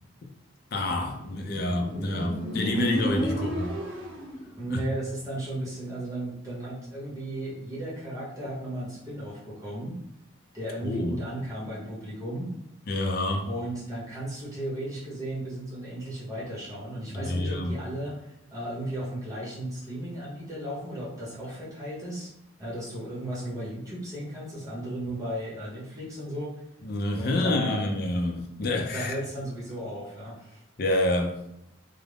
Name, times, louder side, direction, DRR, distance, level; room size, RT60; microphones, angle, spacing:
voice 1, 0.7-3.8 4.7-4.8 10.8-11.2 12.9-13.5 17.1-17.8 26.8-29.1 30.8-31.4, left 1 dB, 50° left, 0.4 m, -28 dB
Motorcycle, 1.0-4.5, equal, 85° right, 0.7 m, -32 dB
voice 2, 4.6-10.0 10.5-12.5 13.4-22.3 22.6-26.5 27.1-27.9 28.9-30.6, right 1 dB, 15° right, 0.8 m, -35 dB
2.4 x 2.0 x 3.3 m
head